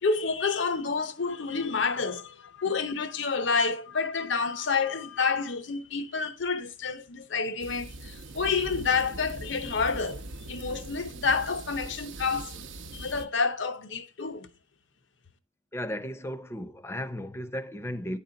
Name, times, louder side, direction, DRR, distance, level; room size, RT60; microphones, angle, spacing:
voice 1, 0.0-10.2 10.5-12.7 12.9-14.5, left 5 dB, 75° left, 0.8 m, -29 dB
sound 1, 7.6-13.2, right 2 dB, 80° right, 0.7 m, -41 dB
voice 2, 15.7-18.2, equal, 15° left, 0.5 m, -35 dB
10.0 x 4.3 x 3.9 m
head